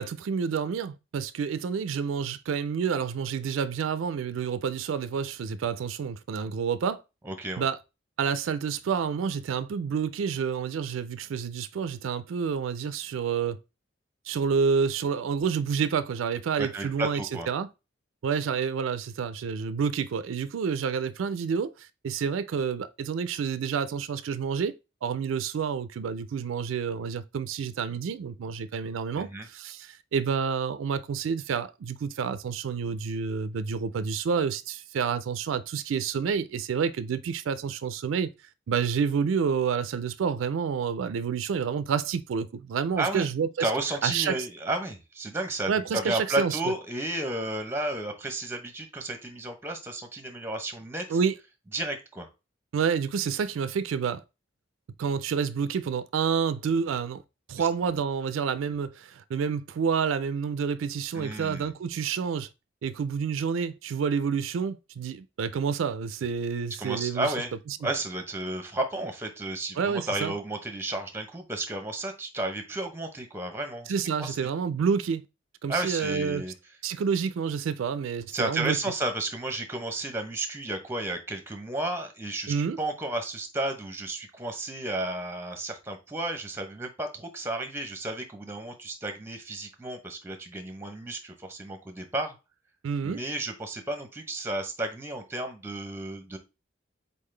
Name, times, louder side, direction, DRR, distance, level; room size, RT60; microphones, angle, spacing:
voice 1, 0.0-7.0 7.6-7.8 8.2-13.6 14.3-17.2 17.5-17.7 18.2-24.7 25.0-38.3 38.7-43.7 44.0-44.5 45.7-46.6 51.1-51.3 52.7-54.2 55.0-57.2 57.5-62.5 62.8-67.3 67.7-67.8 69.8-70.3 73.9-75.2 75.6-76.4 76.8-78.8 82.5-82.8 92.8-93.2, right 6 dB, 85° right, 0.4 m, -29 dB
voice 2, 7.2-7.7 16.6-17.5 29.1-29.5 43.0-43.3 43.6-51.2 51.7-52.3 57.5-57.7 61.1-61.7 66.8-67.5 67.8-73.9 74.2-74.5 75.7-76.5 78.3-92.4 93.0-96.4, right 2 dB, 10° right, 0.7 m, -32 dB
4.2 x 3.7 x 3.2 m
head